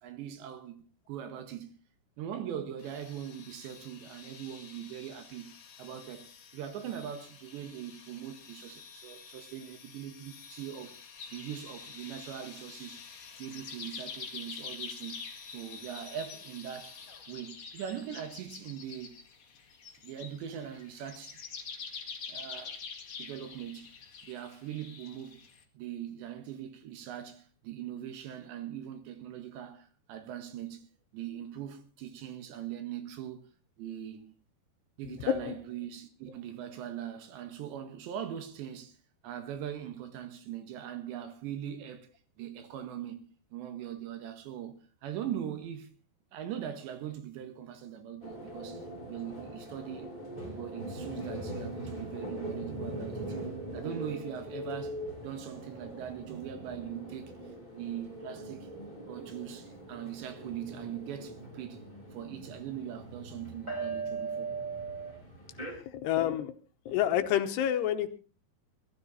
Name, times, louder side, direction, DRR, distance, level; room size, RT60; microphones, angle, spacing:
voice 1, 0.0-1.8 2.2-5.5 5.8-11.0 11.3-13.0 13.4-15.2 15.5-16.9 17.3-19.2 20.0-21.4 22.3-22.8 23.2-23.9 24.2-25.5 25.8-30.9 31.1-33.5 33.8-34.3 35.0-39.0 39.2-42.1 42.4-46.0 46.3-50.1 50.4-53.4 53.7-55.0 55.2-57.3 57.7-58.7 59.1-61.8 62.1-64.5, right 10 dB, 85° right, 3.9 m, -41 dB
sound 1, 2.8-17.5, left 6 dB, 60° left, 4.3 m, -51 dB
sound 2, 11.2-25.6, left 5 dB, 45° left, 2.0 m, -46 dB
sound 3, 48.2-65.7, right 2 dB, 10° right, 5.6 m, -41 dB
voice 2, 65.7-66.5 66.9-68.1, left 10 dB, 75° left, 3.0 m, -28 dB
20.5 x 13.0 x 4.2 m
omnidirectional pair, 5.0 m